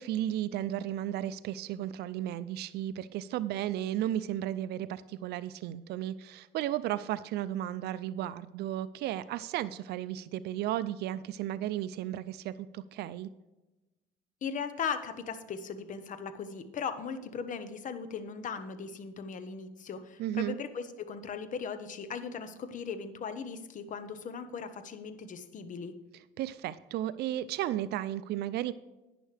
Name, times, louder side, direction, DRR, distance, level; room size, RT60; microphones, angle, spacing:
voice 1, 0.0-13.3 20.2-20.6 26.4-28.7, right 12 dB, 75° right, 15 dB, 0.4 m, -34 dB
voice 2, 14.4-26.0, left 6 dB, 50° left, 10 dB, 1.1 m, -38 dB
11.0 x 9.9 x 3.4 m, 1.1 s
cardioid pair, 110°, 17 cm